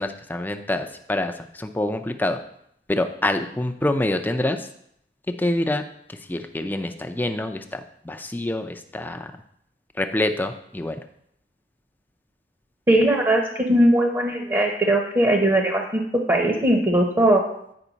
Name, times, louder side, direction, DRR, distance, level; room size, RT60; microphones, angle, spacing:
voice 1, 0.0-2.4 2.9-4.7 5.4-5.8 6.1-9.3 10.0-11.0, left 1 dB, 10° left, 6 dB, 0.5 m, -26 dB
voice 2, 12.9-13.4 13.7-17.4, right 1 dB, 20° right, 1 dB, 0.8 m, -19 dB
8.5 x 5.4 x 4.0 m, 0.73 s
head